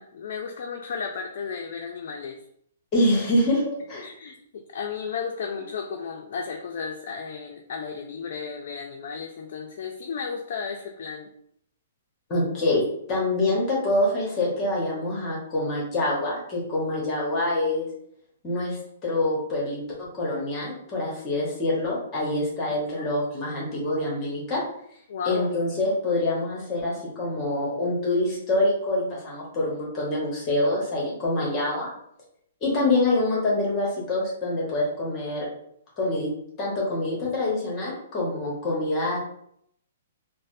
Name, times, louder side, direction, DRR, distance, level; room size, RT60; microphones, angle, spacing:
voice 1, 0.0-2.4 4.0-11.3 22.9-23.1 25.1-25.5, left 6 dB, 60° left, 2 dB, 0.4 m, -34 dB
voice 2, 2.9-3.6 3.9-4.1 12.3-12.8 13.1-17.9 18.4-24.6 25.2-31.9 32.6-35.5 36.0-36.3 36.6-39.2, left 2 dB, 30° left, -4 dB, 1.1 m, -25 dB
3.9 x 2.0 x 2.5 m, 0.71 s
hypercardioid pair, 140°, 0 cm